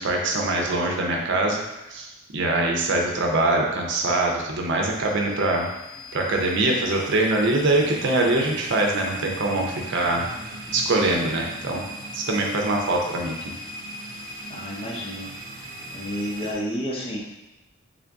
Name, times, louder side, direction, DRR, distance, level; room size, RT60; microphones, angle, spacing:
voice 1, 0.0-1.6 1.9-5.7 6.1-10.3 10.7-11.8 12.1-13.5, right 2 dB, 60° right, 0 dB, 0.6 m, -23 dB
sound 1, 4.8-16.5, right 1 dB, 30° right, 0.9 m, -38 dB
voice 2, 14.5-15.3 15.9-17.2, equal, 25° left, -3 dB, 0.6 m, -30 dB
3.6 x 2.5 x 3.5 m, 1.0 s
head